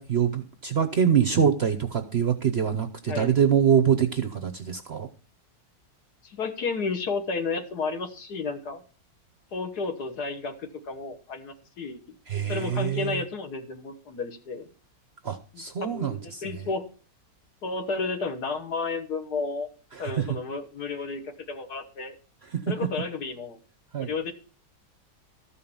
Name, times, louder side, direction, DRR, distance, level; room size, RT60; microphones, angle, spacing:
voice 1, 0.0-5.1 12.3-13.2 15.2-16.7 19.9-20.3 22.4-22.7 23.9-24.1, right 8 dB, 50° right, 8 dB, 0.8 m, -25 dB
voice 2, 6.2-8.8 9.5-12.0 12.5-14.7 15.9-16.8 17.6-19.7 20.0-22.2 22.7-23.6 24.0-24.3, left 4 dB, 60° left, 7 dB, 1.8 m, -32 dB
13.5 x 5.7 x 7.0 m, 0.38 s
omnidirectional pair, 2.0 m